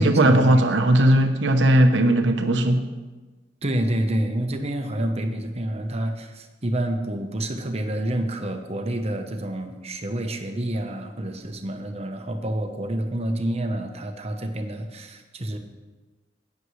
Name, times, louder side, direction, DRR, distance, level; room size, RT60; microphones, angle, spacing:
voice 1, 0.0-2.9, right 1 dB, 90° right, 6 dB, 0.9 m, -18 dB
voice 2, 3.6-15.6, right 1 dB, 35° right, 5 dB, 1.0 m, -28 dB
13.5 x 9.5 x 3.2 m, 1.2 s
head